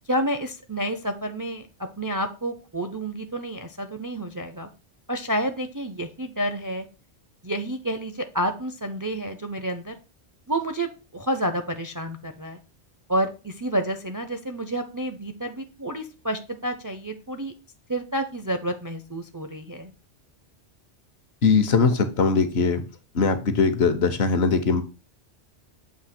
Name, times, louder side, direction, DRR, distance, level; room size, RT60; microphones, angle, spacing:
voice 1, 0.1-1.7 2.0-4.7 5.1-6.9 7.4-9.9 10.5-12.6 13.1-17.5 17.9-19.9, right 1 dB, 30° right, 7 dB, 0.4 m, -29 dB
voice 2, 21.4-22.8 23.1-24.8, left 4 dB, 70° left, 9 dB, 1.1 m, -21 dB
7.2 x 2.8 x 5.8 m, 0.33 s
omnidirectional pair, 1.1 m